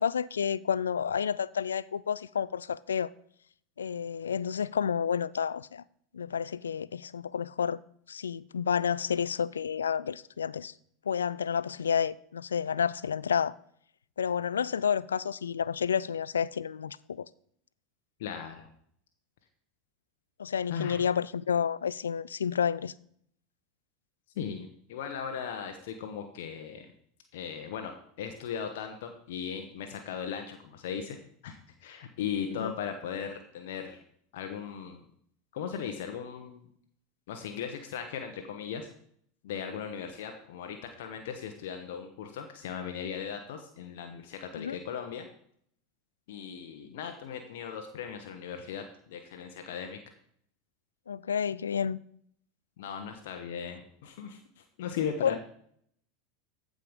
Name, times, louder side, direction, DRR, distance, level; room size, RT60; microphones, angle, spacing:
voice 1, 0.0-3.1 3.8-5.8 6.1-7.8 8.1-10.7 11.1-13.6 14.2-17.3 20.4-22.9 32.6-32.7 44.5-44.8 51.1-52.0 55.2-55.4, left 7 dB, 80° left, 0.4 m, -30 dB
voice 2, 18.2-18.7 20.7-21.0 24.3-26.9 27.3-31.2 31.4-34.0 34.3-35.0 35.5-36.7 37.3-38.9 39.4-45.3 46.3-50.0 52.8-55.4, left 7 dB, 65° left, 1.1 m, -38 dB
14.5 x 5.3 x 5.2 m
hypercardioid pair, 85°, 0 cm